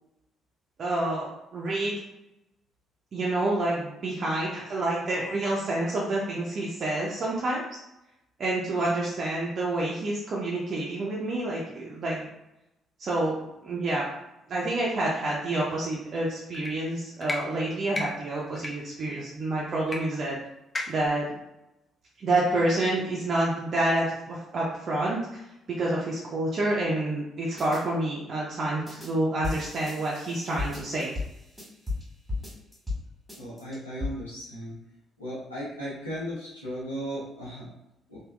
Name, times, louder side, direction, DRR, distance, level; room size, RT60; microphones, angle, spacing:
voice 1, 0.8-1.9 3.1-7.6 8.4-12.3 13.0-13.4 13.6-14.1 14.5-20.4 20.9-21.3 22.2-25.4 25.7-31.1, right 2 dB, 45° right, -5 dB, 0.5 m, -28 dB
sound 1, 16.5-16.7 17.2-17.4 17.9-18.1 18.6-18.7 19.9-20.0 20.2-20.3 20.7-21.1, left 2 dB, 25° left, 0.5 m, -32 dB
sound 2, 27.6-27.8 28.9-29.1 29.4-32.0 32.3-33.0 33.3-34.1, left 3 dB, 5° right, 1.4 m, -34 dB
voice 2, 33.4-34.8 35.2-37.7 38.1-38.2, equal, 90° left, -8 dB, 0.8 m, -36 dB
3.3 x 2.3 x 2.3 m, 0.90 s
figure-of-eight pair, 45°, 0 cm